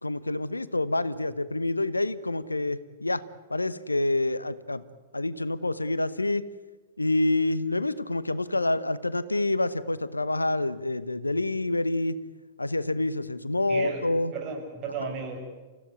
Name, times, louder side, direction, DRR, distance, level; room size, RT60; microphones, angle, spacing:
voice 1, 0.0-3.2 3.5-4.8 5.1-6.5 7.0-12.2 12.6-14.3, left 2 dB, 85° left, 16 dB, 0.9 m, -27 dB
voice 2, 13.7-15.4, right 4 dB, 35° right, 3 dB, 6.3 m, -34 dB
29.0 x 16.0 x 9.7 m, 1.3 s
figure-of-eight pair, 100°, 0 cm